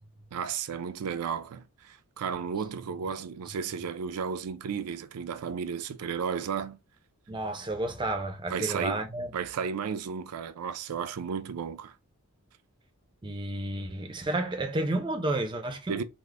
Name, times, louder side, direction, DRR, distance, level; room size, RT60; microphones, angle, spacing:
voice 1, 0.3-6.8 8.5-9.0 9.3-11.9 15.9-16.0, right 6 dB, 85° right, 0.4 m, -33 dB
voice 2, 7.3-9.3 13.2-16.0, right 2 dB, 20° right, 0.5 m, -31 dB
3.6 x 2.0 x 3.3 m
head